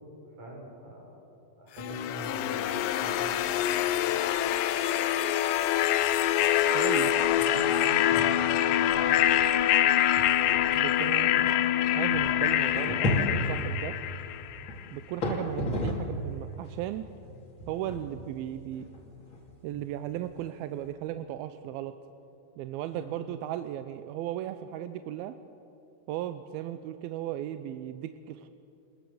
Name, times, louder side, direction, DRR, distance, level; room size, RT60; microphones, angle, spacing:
voice 1, 0.3-1.1 1.6-4.2 7.2-8.1 8.3-9.3 22.9-23.0, right 1 dB, 45° right, -1 dB, 7.0 m, -44 dB
sound 1, 1.8-14.7, left 11 dB, 85° left, 1.9 m, -25 dB
voice 2, 6.7-7.1 10.7-11.6 12.0-14.0 14.9-17.1 17.7-18.9 19.6-22.0 22.6-25.4 26.1-28.5, right 12 dB, 80° right, 10 dB, 2.3 m, -36 dB
sound 2, 8.1-8.5 8.8-8.9 9.6-9.7 10.2-16.3 16.6-20.9, left 1 dB, 35° left, 2.7 m, -34 dB
24.0 x 20.5 x 7.0 m, 2.7 s
omnidirectional pair, 4.7 m